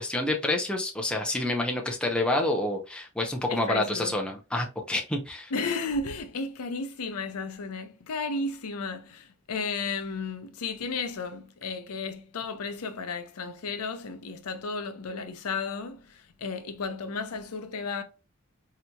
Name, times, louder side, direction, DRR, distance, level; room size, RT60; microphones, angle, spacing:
voice 1, 0.0-5.5, left 1 dB, 5° left, 0.5 m, -28 dB
voice 2, 3.5-4.1 5.5-18.0, left 4 dB, 90° left, 0.6 m, -33 dB
4.0 x 2.9 x 2.2 m
head